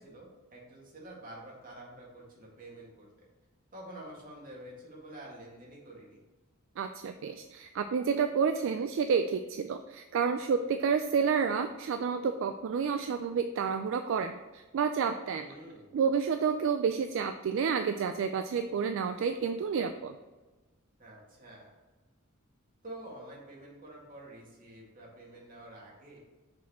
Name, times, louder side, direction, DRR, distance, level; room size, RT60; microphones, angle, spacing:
voice 1, 0.0-3.3 3.7-6.2 15.4-16.0 21.0-21.7 22.8-26.2, right 1 dB, 40° right, -3 dB, 2.0 m, -48 dB
voice 2, 6.8-15.5 15.9-20.2, right 6 dB, 65° right, 8 dB, 0.3 m, -30 dB
6.1 x 4.3 x 4.2 m, 1.2 s
head